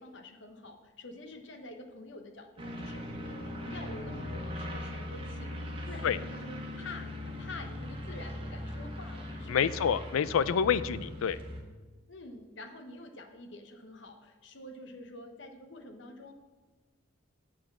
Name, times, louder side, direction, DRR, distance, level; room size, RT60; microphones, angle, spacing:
voice 1, 0.0-3.1 3.5-9.9 12.1-16.3, left 2 dB, 60° left, 7 dB, 0.9 m, -47 dB
sound 1, 2.6-11.6, left 1 dB, 25° right, 1.2 m, -40 dB
voice 2, 9.5-11.4, left 7 dB, 80° left, 17 dB, 0.4 m, -27 dB
8.1 x 5.0 x 7.2 m, 1.3 s
head